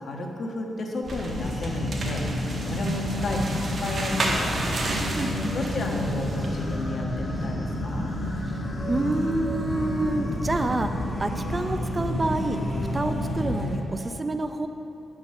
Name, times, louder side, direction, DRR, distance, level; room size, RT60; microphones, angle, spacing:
voice 1, 0.0-4.9 5.5-8.1, left 1 dB, 60° left, 1 dB, 1.4 m, -32 dB
sound 1, 1.0-13.8, left 1 dB, 40° left, 1.8 m, -30 dB
sound 2, 1.0-6.6, right 2 dB, 50° right, 1.6 m, -33 dB
voice 2, 5.1-5.9 8.5-10.9 11.2-12.6 12.9-14.7, right 2 dB, 25° right, 7 dB, 0.6 m, -28 dB
10.5 x 6.2 x 6.5 m, 2.9 s
cardioid pair, 85°, 0 cm